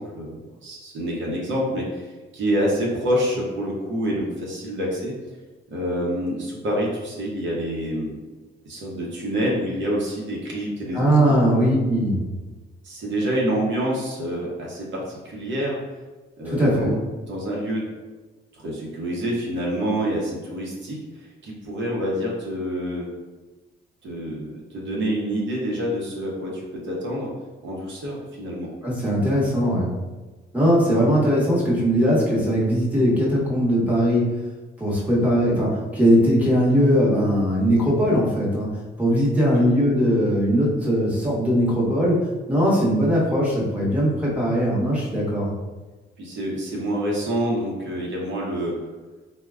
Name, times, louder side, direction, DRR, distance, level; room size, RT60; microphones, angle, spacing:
voice 1, 0.0-2.1 2.3-5.1 5.7-8.2 8.6-11.4 12.8-15.8 16.4-17.0 17.3-17.9 18.5-21.0 21.4-23.1 24.0-27.3 27.6-28.7 39.1-39.2 39.5-39.6 46.2-48.8, equal, 70° right, -3 dB, 0.8 m, -27 dB
voice 2, 10.9-12.2 16.4-16.9 28.8-29.9 30.5-34.3 34.8-42.2 42.5-45.5, equal, 5° right, -6 dB, 0.9 m, -20 dB
3.4 x 2.1 x 2.4 m, 1.2 s
cardioid pair, 90°, 20 cm